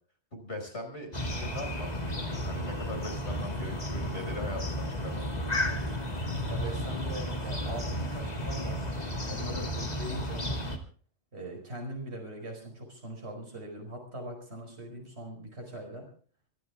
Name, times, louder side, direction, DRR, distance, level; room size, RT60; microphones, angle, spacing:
voice 1, 0.3-5.8 9.6-9.9, left 1 dB, 85° left, 3 dB, 5.5 m, -41 dB
sound 1, 1.1-10.8, equal, 40° left, 2.2 m, -33 dB
voice 2, 6.5-8.9 9.2-10.5 11.3-16.1, right 1 dB, 70° right, 1 dB, 5.1 m, -41 dB
25.0 x 13.0 x 3.5 m, 0.43 s
omnidirectional pair, 1.1 m